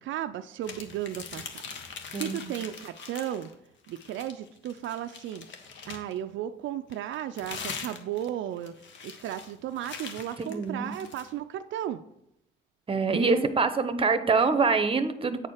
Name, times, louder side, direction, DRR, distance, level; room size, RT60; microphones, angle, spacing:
voice 1, 0.0-1.6 2.1-3.5 3.9-5.5 5.9-8.7 9.0-12.0 13.1-13.4, right 11 dB, 75° right, 9 dB, 0.4 m, -35 dB
paper crumble, 0.6-3.5 3.8-6.2 6.9-11.3, left 5 dB, 70° left, 1.2 m, -42 dB
voice 2, 2.1-2.5 10.4-10.9 12.9-15.5, right 4 dB, 30° right, 11 dB, 0.8 m, -25 dB
8.1 x 4.3 x 6.4 m, 0.79 s
cardioid pair, 90°, 20 cm